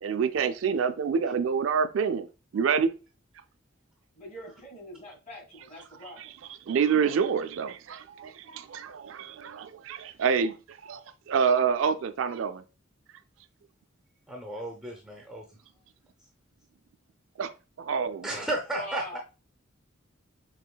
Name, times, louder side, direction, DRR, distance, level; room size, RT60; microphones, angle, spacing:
voice 1, 0.0-2.3 2.5-2.9 6.2-6.3 6.7-11.0 11.3-12.6 17.4-18.3, right 6 dB, 65° right, 0.3 m, -27 dB
voice 2, 4.1-6.3 18.7-19.2, left 1 dB, 35° left, 1.6 m, -42 dB
voice 3, 14.3-15.4 18.2-19.2, right 1 dB, 5° right, 0.6 m, -33 dB
5.6 x 3.0 x 2.2 m
head